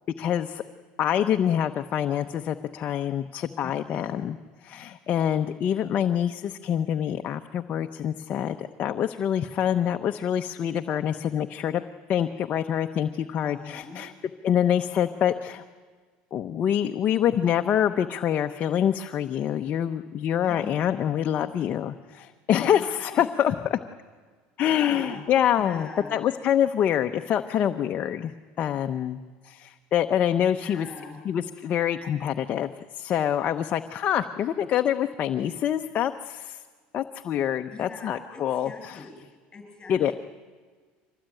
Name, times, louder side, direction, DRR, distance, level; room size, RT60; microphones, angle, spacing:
voice 1, 0.2-0.6 1.0-4.4 4.6-11.8 12.1-14.1 14.4-15.6 16.3-23.8 24.6-30.9 31.2-36.6 36.9-39.0 39.9-40.1, left 9 dB, 45° left, 6 dB, 0.9 m, -26 dB
voice 2, 3.6-4.1 13.5-14.0 20.4-20.8 22.5-23.2 24.7-25.2 25.6-26.1 30.6-31.2 37.7-40.1, left 3 dB, 20° left, 4 dB, 7.9 m, -42 dB
24.5 x 19.0 x 9.1 m, 1.5 s
supercardioid pair, 115°, 4 cm